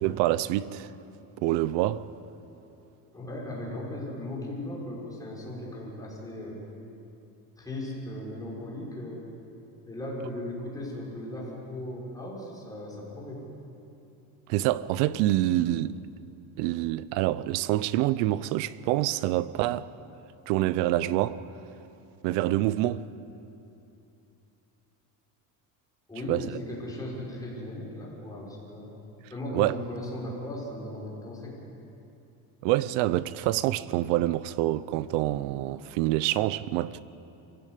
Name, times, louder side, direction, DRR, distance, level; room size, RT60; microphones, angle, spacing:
voice 1, 0.0-0.9 1.4-2.0 14.5-16.0 16.6-19.8 20.5-21.4 22.2-23.0 26.3-26.4 29.5-29.8 32.6-37.0, right 15 dB, 70° right, 0.8 m, -26 dB
voice 2, 3.1-6.6 7.6-9.3 9.8-13.4 26.1-28.9 29.3-31.7, left 1 dB, 10° left, 6.3 m, -37 dB
25.0 x 16.0 x 8.4 m
cardioid pair, 140°, 44 cm